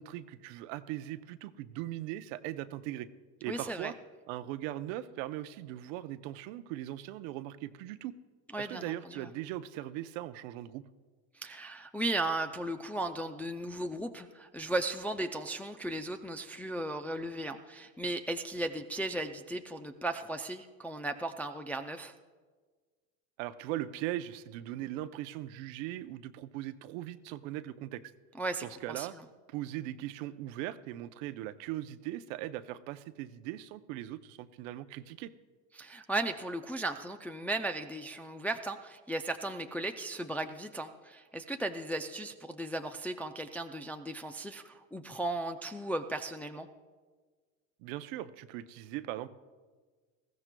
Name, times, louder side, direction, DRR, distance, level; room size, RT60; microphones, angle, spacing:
voice 1, 0.0-3.1 3.4-3.9 4.3-8.1 8.6-10.8 23.4-28.0 28.6-29.1 29.5-35.3 47.8-49.3, right 14 dB, 65° right, 12 dB, 0.7 m, -39 dB
voice 2, 3.5-3.9 8.5-9.3 11.3-22.1 28.4-29.2 35.7-46.7, right 2 dB, 5° left, 4 dB, 0.3 m, -36 dB
20.0 x 14.5 x 2.2 m, 1.4 s
supercardioid pair, 100°, 41 cm